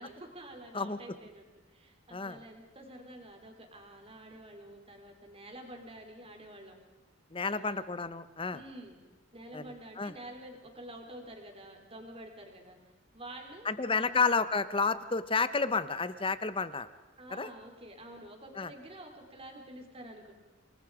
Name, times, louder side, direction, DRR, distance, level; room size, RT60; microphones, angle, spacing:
voice 1, 0.0-6.8 7.4-7.9 8.5-9.0 9.3-12.8 13.1-14.2 17.2-20.3, right 1 dB, 30° right, 3 dB, 4.3 m, -49 dB
voice 2, 7.3-8.6 9.5-9.6 10.0-10.1 13.6-16.9 17.3-17.5 18.6-18.7, left 4 dB, 30° left, 14 dB, 1.1 m, -30 dB
28.0 x 22.0 x 5.1 m, 1.3 s
head